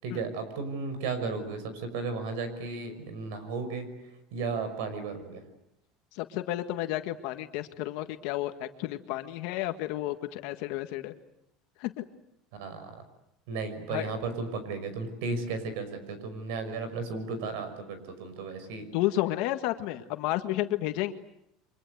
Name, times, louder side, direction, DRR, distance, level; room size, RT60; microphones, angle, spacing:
voice 1, 0.0-3.9 4.3-5.4 12.5-13.0 13.5-18.9, right 4 dB, 75° right, 10 dB, 5.9 m, -34 dB
voice 2, 6.1-11.1 11.8-12.0 13.9-14.1 18.9-21.1, left 15 dB, 60° left, 8 dB, 1.6 m, -31 dB
30.0 x 25.0 x 8.0 m, 0.78 s
cardioid pair, 175°, 0 cm